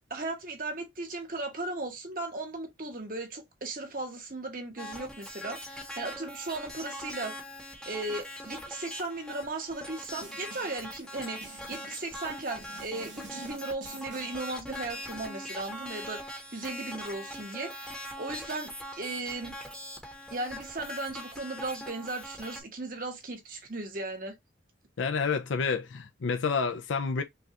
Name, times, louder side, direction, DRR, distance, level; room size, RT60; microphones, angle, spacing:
voice 1, 0.1-7.4 7.9-19.6 20.3-24.4, right 2 dB, 45° right, 1.1 m, -37 dB
sound 1, 4.8-22.6, equal, 5° left, 0.9 m, -42 dB
Snare drum, 10.2-10.9 11.4-12.1 12.6-14.5, right 3 dB, 75° right, 1.4 m, -50 dB
voice 2, 25.0-27.2, left 5 dB, 90° left, 0.5 m, -29 dB
5.4 x 2.4 x 2.8 m
head